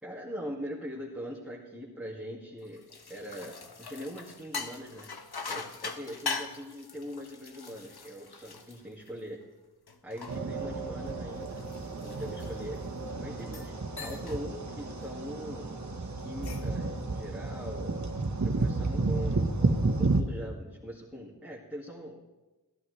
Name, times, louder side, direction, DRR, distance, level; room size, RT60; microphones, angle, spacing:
voice 1, 0.0-2.8 3.1-5.1 5.5-9.4 10.0-11.7 12.0-12.8 13.2-13.7 14.0-15.8 16.2-17.9 18.4-22.2, equal, ahead, -6 dB, 2.1 m, -41 dB
sound 1, 2.6-9.4 9.9-12.9 13.4-13.7 14.0-14.4 14.8-15.1 16.2-16.8, left 4 dB, 75° left, 1.0 m, -41 dB
sound 2, 10.3-20.2, right 3 dB, 45° right, 1.2 m, -31 dB
16.5 x 11.5 x 3.3 m, 1.1 s
wide cardioid pair, 60°, 39 cm